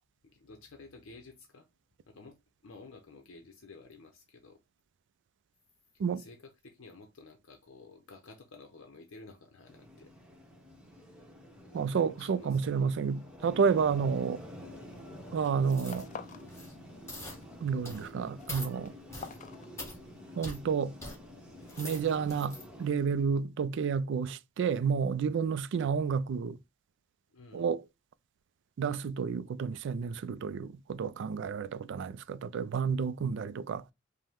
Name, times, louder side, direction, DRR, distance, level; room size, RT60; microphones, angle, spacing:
voice 1, 0.2-1.7 2.1-2.4 2.6-4.6 6.2-10.1 11.6-13.0 27.3-27.6, left 3 dB, 75° left, 0.7 m, -52 dB
sound 1, 9.6-22.9, left 1 dB, 5° right, 0.9 m, -49 dB
voice 2, 11.7-14.4 15.3-16.1 17.6-18.9 20.4-20.9 21.8-26.6 27.5-27.8 28.8-33.8, right 6 dB, 60° right, 0.3 m, -30 dB
sound 2, 14.8-15.1 15.3-16.5 16.8-17.5 17.8-20.3, left 6 dB, 40° left, 0.4 m, -48 dB
sound 3, 15.7-16.1 16.4-16.7 17.1-17.4 17.8-18.1 18.5-18.7 19.1-19.4 19.8-20.0 20.4-20.6 21.0-21.2 21.6-22.6 23.1-23.2, left 1 dB, 15° left, 1.5 m, -43 dB
5.3 x 2.1 x 3.4 m
head